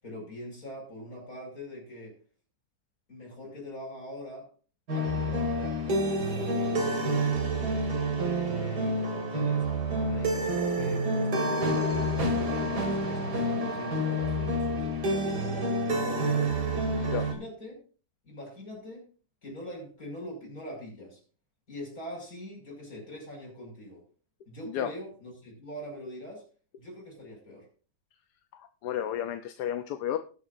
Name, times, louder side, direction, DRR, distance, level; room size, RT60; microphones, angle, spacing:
voice 1, 0.0-2.2 3.1-4.5 4.9-7.1 8.2-17.8 18.2-19.0 19.4-21.2 21.7-24.0 24.5-26.4 26.8-27.7, left 1 dB, 60° left, -1 dB, 6.5 m, -43 dB
sound 1, 4.9-17.3, right 1 dB, 85° right, 2.7 m, -28 dB
voice 2, 28.5-30.2, left 10 dB, 85° left, 8 dB, 1.3 m, -32 dB
20.0 x 8.0 x 2.6 m, 0.38 s
omnidirectional pair, 1.7 m